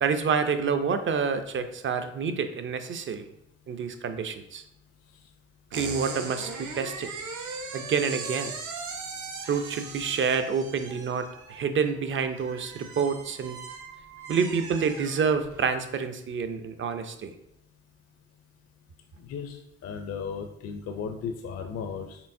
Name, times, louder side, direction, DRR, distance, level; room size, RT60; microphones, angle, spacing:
voice 1, 0.0-3.2 3.7-4.6 5.7-7.1 7.7-8.5 9.5-13.6 14.3-17.3, right 6 dB, 40° right, 9 dB, 0.5 m, -28 dB
sound 1, 5.7-15.7, right 4 dB, 75° right, 0.8 m, -39 dB
voice 2, 19.2-22.2, left 6 dB, 55° left, 4 dB, 0.5 m, -35 dB
4.5 x 3.3 x 2.6 m, 0.78 s
cardioid pair, 90°, 30 cm